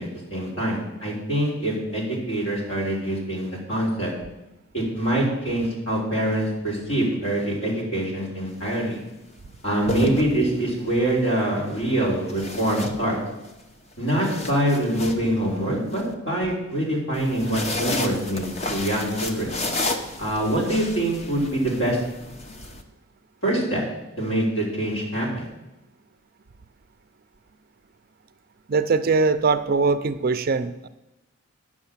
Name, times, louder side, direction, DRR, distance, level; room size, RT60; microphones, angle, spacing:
voice 1, 0.0-4.1 4.7-9.0 9.6-13.2 14.0-19.5 20.2-22.0 23.4-23.8 24.2-25.5, right 1 dB, 60° left, -3 dB, 3.8 m, -24 dB
sound 1, 8.5-8.7 9.6-10.8 12.3-13.5 13.9-16.0 17.1-22.8, left 2 dB, 30° left, 0.8 m, -32 dB
voice 2, 28.7-30.9, right 4 dB, 45° right, 11 dB, 0.4 m, -21 dB
9.9 x 6.2 x 7.2 m, 0.97 s
head